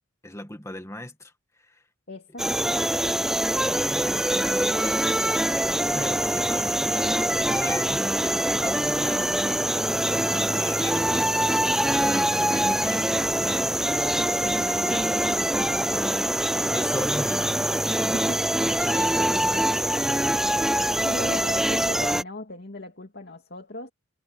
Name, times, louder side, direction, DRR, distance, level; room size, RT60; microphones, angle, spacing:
voice 1, 0.2-1.8 3.7-5.2 5.9-9.6 9.8-11.3 12.0-13.8 14.2-16.2 16.7-18.2 18.6-19.9, left 1 dB, 15° left, 1.9 m, -37 dB
voice 2, 2.1-2.7 18.1-18.4 21.0-23.9, left 2 dB, 55° left, 2.4 m, -37 dB
sound 1, 2.4-22.2, right 1 dB, ahead, 0.4 m, -24 dB
head